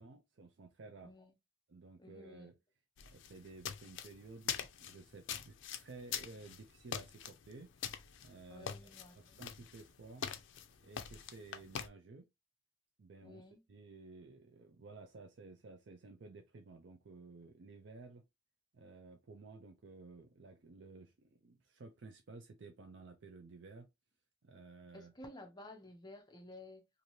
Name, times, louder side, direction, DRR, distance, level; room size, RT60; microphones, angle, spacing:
voice 1, 0.0-1.1 1.7-2.5 3.1-7.7 8.2-10.3 10.8-12.3 13.0-13.4 13.7-18.3 18.7-23.9 24.4-25.1, right 3 dB, 65° right, 0.5 m, -54 dB
voice 2, 1.0-1.4 2.0-2.5 8.5-9.5 13.2-13.6 24.9-26.9, left 1 dB, 20° left, 0.6 m, -53 dB
sound 1, 3.0-11.9, left 8 dB, 70° left, 0.4 m, -44 dB
2.7 x 2.6 x 3.1 m
head